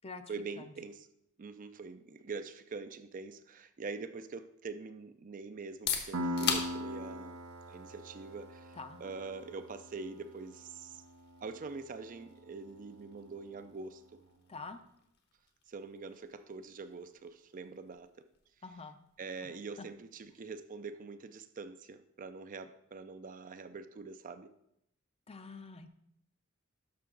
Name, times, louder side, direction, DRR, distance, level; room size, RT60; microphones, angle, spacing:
voice 1, 0.3-1.1 1.4-7.4 7.7-11.0 11.4-14.2 15.7-18.3 19.2-24.5, right 4 dB, 40° right, 10 dB, 0.4 m, -44 dB
sound 1, 5.6-21.2, left 6 dB, 50° left, 1.2 m, -45 dB
Piano, 6.1-13.5, equal, 80° right, 0.8 m, -42 dB
voice 2, 14.5-14.8 18.6-19.0 19.5-19.9 25.3-25.9, left 4 dB, 30° left, 9 dB, 0.6 m, -46 dB
12.0 x 5.7 x 3.9 m, 0.78 s
head